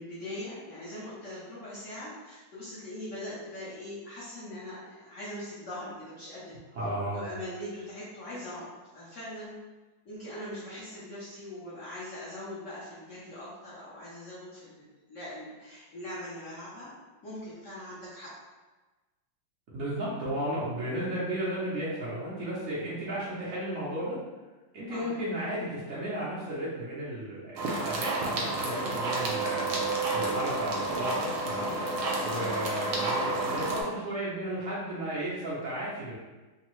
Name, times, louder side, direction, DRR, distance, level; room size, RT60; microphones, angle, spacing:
voice 1, 0.0-6.6 7.0-8.7 8.9-9.5 10.0-16.9 17.2-18.3 24.9-25.1 32.4-32.6, left 1 dB, 60° left, -9 dB, 0.8 m, -41 dB
voice 2, 6.7-7.3 19.7-24.2 24.7-31.7 32.2-36.2, right 1 dB, 65° right, -9 dB, 0.8 m, -34 dB
sound 1, 27.6-33.8, right 2 dB, 80° right, 1.5 m, -30 dB
3.6 x 2.0 x 2.9 m, 1.2 s
omnidirectional pair, 2.3 m